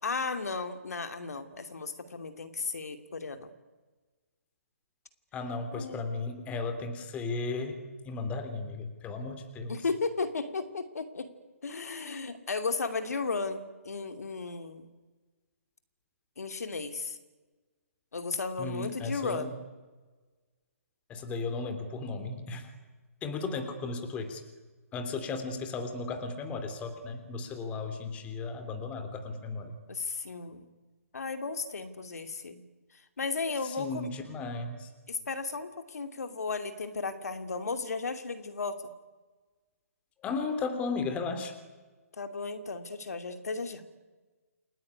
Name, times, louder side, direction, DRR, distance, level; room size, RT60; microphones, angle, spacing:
voice 1, 0.0-3.5 5.7-6.0 9.7-11.3 11.6-14.9 16.4-17.2 18.1-19.5 29.9-30.6 31.1-32.6 33.2-34.1 35.1-38.8 42.2-43.8, left 4 dB, 75° left, 8 dB, 2.7 m, -35 dB
voice 2, 5.3-9.8 18.6-19.5 21.1-22.7 23.2-24.4 24.9-29.7 33.6-34.9 40.2-41.5, left 3 dB, 15° left, 8 dB, 3.0 m, -35 dB
29.0 x 20.5 x 9.7 m, 1.3 s
hypercardioid pair, 145°, 9 cm